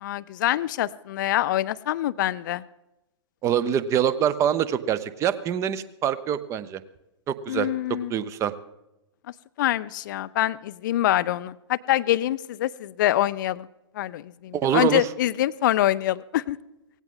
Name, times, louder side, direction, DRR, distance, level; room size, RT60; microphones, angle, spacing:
voice 1, 0.0-2.6 7.5-8.1 9.6-13.7 14.0-16.6, left 13 dB, 45° left, 16 dB, 0.4 m, -25 dB
voice 2, 3.4-6.8 7.3-7.7 8.1-8.5 14.5-15.1, right 9 dB, 20° right, 16 dB, 0.7 m, -24 dB
18.0 x 16.5 x 3.8 m, 0.92 s
figure-of-eight pair, 110°, 15 cm